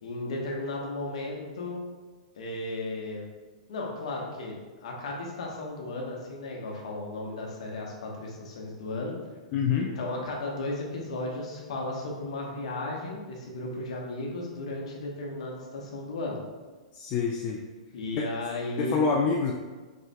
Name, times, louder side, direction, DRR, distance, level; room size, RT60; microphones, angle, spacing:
voice 1, 0.0-1.8 2.3-3.3 3.7-9.1 9.8-16.4 17.9-19.0, left 2 dB, 60° left, -1 dB, 1.0 m, -35 dB
voice 2, 9.5-9.9 16.9-17.6 18.1-18.3 18.8-19.5, left 5 dB, 35° left, 1 dB, 0.3 m, -26 dB
5.0 x 3.6 x 2.2 m, 1.3 s
figure-of-eight pair, 105°, 4 cm